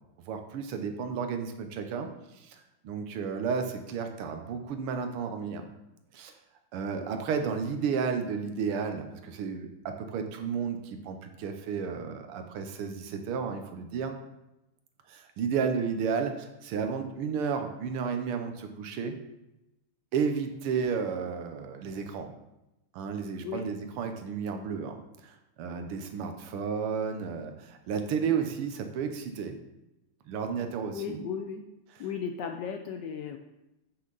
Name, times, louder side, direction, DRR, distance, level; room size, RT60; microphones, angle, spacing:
voice 1, 0.3-2.1 2.4-2.6 2.8-5.6 6.1-6.3 6.7-14.2 15.1-19.2 20.1-22.3 22.9-25.0 25.2-29.6 30.3-31.2 31.9-32.1, right 6 dB, 80° right, 6 dB, 1.7 m, -32 dB
voice 2, 30.9-31.6 32.0-33.4, left 7 dB, 75° left, 5 dB, 1.0 m, -35 dB
9.0 x 5.8 x 3.9 m, 0.95 s
omnidirectional pair, 2.4 m